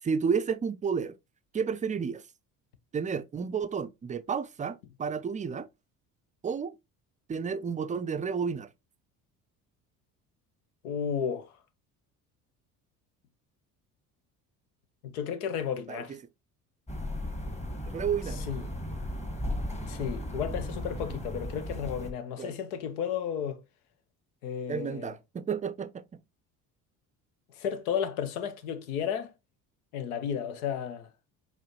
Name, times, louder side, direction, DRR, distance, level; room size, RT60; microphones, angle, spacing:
voice 1, 0.0-1.2 1.5-2.2 2.9-5.7 6.4-6.7 7.3-8.7 15.9-16.0 17.9-18.4 22.4-22.5 24.7-26.1, right 6 dB, 20° right, 0.4 m, -31 dB
voice 2, 10.8-11.5 15.0-16.2 18.4-18.7 19.8-23.6 24.4-25.1 27.6-29.3 29.9-31.1, left 8 dB, 90° left, 0.7 m, -33 dB
sound 1, 16.9-22.1, left 1 dB, 15° left, 1.2 m, -36 dB
4.8 x 2.7 x 3.0 m
hypercardioid pair, 65°, 43 cm